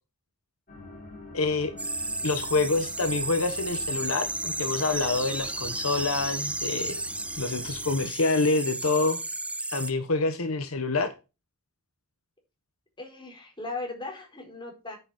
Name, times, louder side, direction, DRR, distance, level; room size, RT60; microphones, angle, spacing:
sound 1, 0.7-8.1, left 1 dB, 40° left, 3.2 m, -46 dB
voice 1, 1.3-1.7 2.2-7.0 7.4-9.2 9.7-11.1, left 3 dB, 80° left, 9 dB, 1.3 m, -27 dB
sound 2, 1.8-9.9, right 2 dB, 5° right, 0.8 m, -33 dB
voice 2, 13.0-15.0, left 3 dB, 20° left, 1 dB, 4.6 m, -37 dB
9.6 x 8.1 x 4.3 m, 0.29 s
head